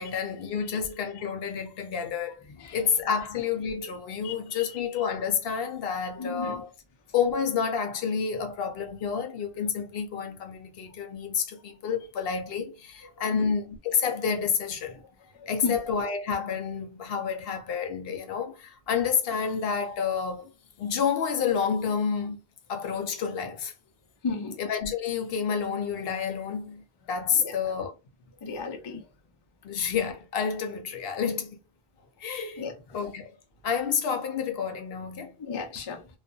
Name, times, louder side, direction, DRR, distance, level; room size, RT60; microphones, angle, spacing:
voice 1, 0.0-2.4 2.7-6.7 7.1-15.0 15.5-20.5 20.8-22.4 22.7-23.7 24.6-27.9 29.6-31.6 32.2-32.7 32.9-33.3 33.6-35.4, left 6 dB, 70° left, 0.7 m, -29 dB
voice 2, 4.2-4.6 6.2-6.6 13.3-13.5 15.4-15.7 24.2-24.6 27.4-27.5 28.4-29.0 32.6-32.7 35.5-36.0, left 4 dB, 40° left, 0.4 m, -33 dB
2.4 x 2.3 x 2.6 m
omnidirectional pair, 1.1 m